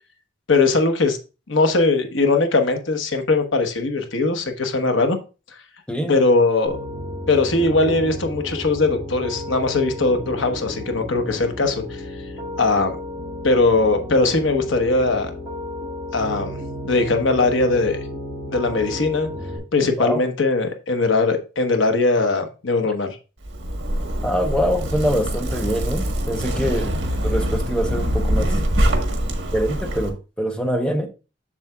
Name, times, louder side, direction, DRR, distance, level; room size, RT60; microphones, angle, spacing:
voice 1, 0.5-1.2 1.5-5.2 6.1-6.7 7.3-12.0 12.6-13.0 13.4-15.3 16.1-16.6 16.8-18.0 18.5-19.3 19.7-23.2, left 3 dB, 90° left, 1.1 m, -20 dB
Piano, 6.7-19.6, left 1 dB, 20° right, 2.3 m, -33 dB
voice 2, 19.8-20.2 24.2-28.5 29.5-31.1, equal, 5° left, 0.8 m, -24 dB
Zipper (clothing), 23.4-30.1, equal, 80° right, 1.5 m, -24 dB
7.3 x 7.0 x 2.3 m
head